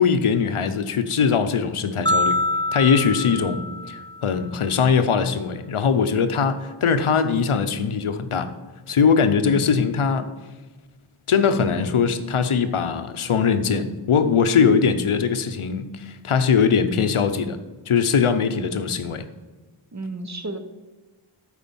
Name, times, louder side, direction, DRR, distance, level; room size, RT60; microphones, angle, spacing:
voice 1, 0.0-2.4 2.7-8.5 8.9-10.3 11.3-17.6 17.9-19.3, left 6 dB, 85° left, 10 dB, 0.8 m, -21 dB
sound 1, 2.1-4.4, left 1 dB, 10° left, 0.3 m, -25 dB
voice 2, 9.5-9.8 18.5-18.8 19.9-20.6, right 2 dB, 35° right, 9 dB, 0.8 m, -33 dB
9.3 x 4.8 x 7.1 m, 1.2 s
wide cardioid pair, 75°, 49 cm